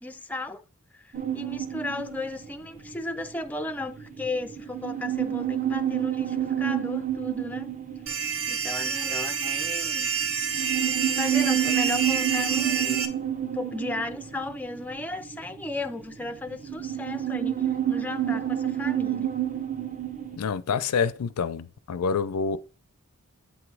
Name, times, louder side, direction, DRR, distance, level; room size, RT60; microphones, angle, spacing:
voice 1, 0.0-0.6 0.9-7.7 8.5-10.1 10.7-10.9 11.1-13.1 13.5-19.3, left 2 dB, 5° left, 0.3 m, -35 dB
sound 1, 1.1-20.4, right 11 dB, 35° right, 0.6 m, -30 dB
sound 2, 8.1-13.1, right 6 dB, 65° right, 0.8 m, -28 dB
voice 2, 20.4-22.6, left 5 dB, 90° left, 0.4 m, -27 dB
8.1 x 3.0 x 4.7 m
head